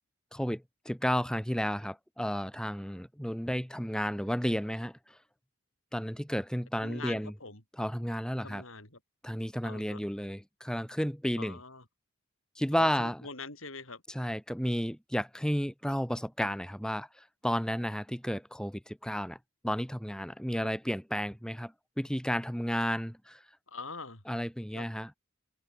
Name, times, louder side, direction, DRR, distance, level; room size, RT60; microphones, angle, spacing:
voice 1, 0.3-5.2 5.9-7.3 7.8-8.6 9.2-11.6 12.6-13.2 14.1-19.4 19.6-23.4 24.3-25.1, equal, 5° left, 2.8 m, -32 dB
voice 2, 6.8-7.6 8.4-9.0 9.6-10.0 11.4-11.8 12.8-14.0 23.7-24.2 24.7-24.9, left 3 dB, 70° left, 7.8 m, -43 dB
head